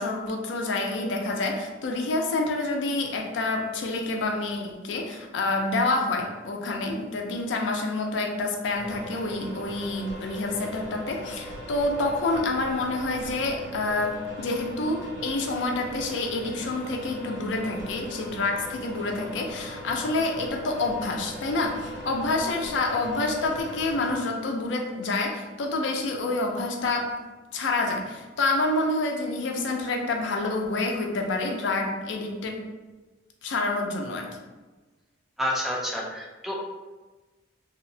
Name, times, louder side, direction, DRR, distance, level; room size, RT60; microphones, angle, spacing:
voice 1, 0.0-27.2 27.5-32.6 33.4-34.4, left 2 dB, 80° left, 2 dB, 0.4 m, -28 dB
sound 1, 8.8-24.2, equal, 75° right, 0.7 m, -40 dB
voice 2, 35.4-36.5, left 1 dB, ahead, -2 dB, 0.3 m, -29 dB
2.7 x 2.0 x 2.6 m, 1.2 s
head